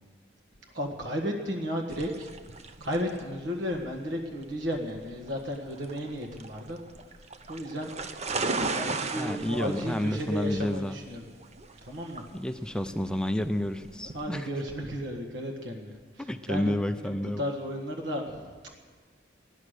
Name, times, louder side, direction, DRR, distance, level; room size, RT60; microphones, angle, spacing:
voice 1, 0.7-2.3 2.8-6.8 7.5-7.9 8.6-11.2 11.9-12.2 13.9-16.8 17.0-18.5, equal, 75° right, 1 dB, 1.6 m, -34 dB
sound 1, 1.9-14.3, right 3 dB, 35° right, 0.7 m, -37 dB
voice 2, 9.2-11.0 12.3-14.5 16.2-17.4, left 1 dB, 5° left, 8 dB, 0.4 m, -30 dB
16.0 x 11.0 x 6.6 m, 1.5 s
head